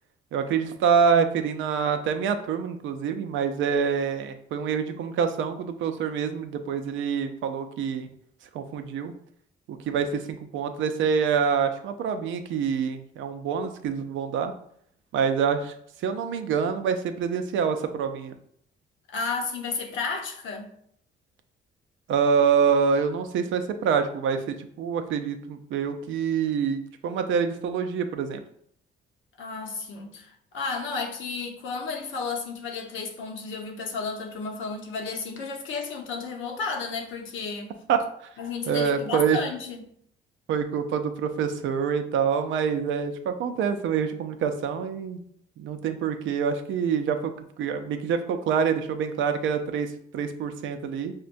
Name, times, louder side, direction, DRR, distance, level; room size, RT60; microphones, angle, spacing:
voice 1, 0.3-8.1 8.5-9.1 9.7-14.5 15.1-15.7 16.0-18.3 22.1-28.4 37.9-38.0 38.7-39.4 40.5-45.2 45.6-47.3 47.6-49.9 50.1-51.1, right 6 dB, 75° right, 0.5 m, -26 dB
voice 2, 19.1-20.7 29.4-37.7 38.4-39.9, left 4 dB, 80° left, 0.8 m, -32 dB
5.4 x 2.2 x 2.5 m
cardioid pair, 90°, 20 cm